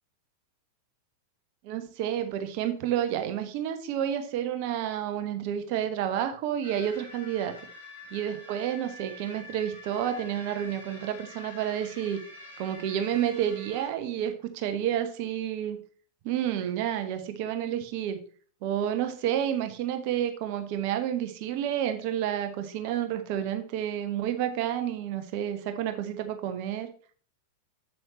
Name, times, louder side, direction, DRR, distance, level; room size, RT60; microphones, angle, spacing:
voice 1, 1.6-7.5 8.1-12.2 12.6-15.8 16.2-18.2 18.6-26.9, right 10 dB, 45° right, 8 dB, 1.0 m, -30 dB
sound 1, 6.6-13.9, left 2 dB, 70° left, 2.6 m, -46 dB
7.6 x 7.5 x 3.1 m, 0.43 s
figure-of-eight pair, 90°, 0 cm